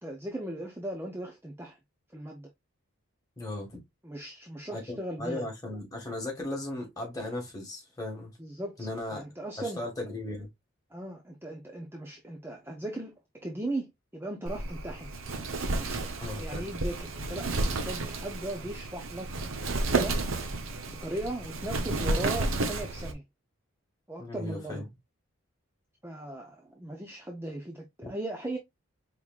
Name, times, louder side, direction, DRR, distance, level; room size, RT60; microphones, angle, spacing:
voice 1, 0.0-1.8 2.1-2.5 4.0-5.5 8.4-9.8 10.9-15.1 15.8-19.3 19.9-20.2 20.9-23.2 24.1-24.8 26.0-28.6, right 1 dB, 10° right, 0.6 m, -38 dB
voice 2, 3.4-3.7 4.7-8.3 8.8-9.2 9.6-10.5 16.2-16.7 24.2-24.8, left 1 dB, 15° left, 1.7 m, -36 dB
Wind, 14.5-23.1, right 2 dB, 65° right, 0.8 m, -32 dB
4.7 x 3.6 x 2.4 m
head